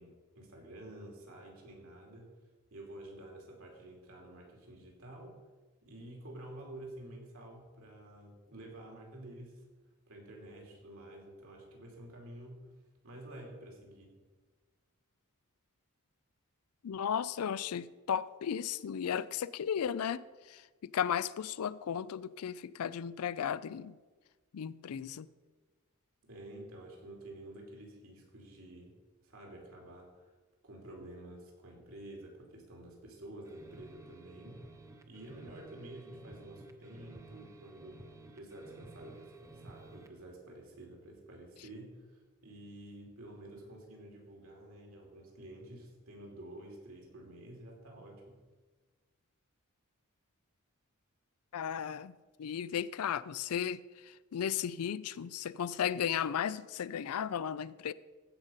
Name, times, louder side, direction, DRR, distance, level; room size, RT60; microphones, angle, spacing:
voice 1, 0.0-2.3 2.7-5.4 5.8-9.6 10.1-12.7 13.0-14.1 26.2-30.3 30.6-34.6 35.1-38.0 38.3-48.4, right 1 dB, 70° right, 0 dB, 2.9 m, -50 dB
voice 2, 16.8-20.2 20.5-23.9 24.5-25.3 51.5-52.1 52.4-57.9, left 8 dB, 85° left, 18 dB, 0.4 m, -35 dB
sound 1, 33.4-40.2, right 2 dB, 15° right, 0.7 m, -54 dB
15.0 x 5.2 x 5.6 m, 1.3 s
head